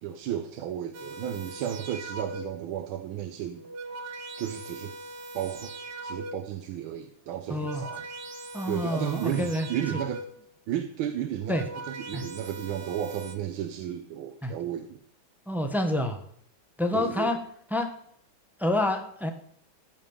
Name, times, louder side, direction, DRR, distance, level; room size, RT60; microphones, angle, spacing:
voice 1, 0.0-3.6 4.4-4.9 5.3-5.7 6.0-8.1 8.7-10.3 10.7-11.6 11.9-15.0 16.9-17.3, right 10 dB, 80° right, 7 dB, 1.6 m, -33 dB
sound 1, 0.9-2.7 3.4-6.6 7.4-10.5 11.3-13.4, right 2 dB, 55° right, 1.6 m, -41 dB
voice 2, 7.5-7.8 8.5-9.7 9.9-10.0 11.5-11.6 12.1-12.2 14.4-14.5 15.5-16.2 16.8-17.4 17.7-17.9 18.6-19.3, left 1 dB, ahead, 5 dB, 0.7 m, -27 dB
14.0 x 5.5 x 7.1 m, 0.67 s
omnidirectional pair, 2.2 m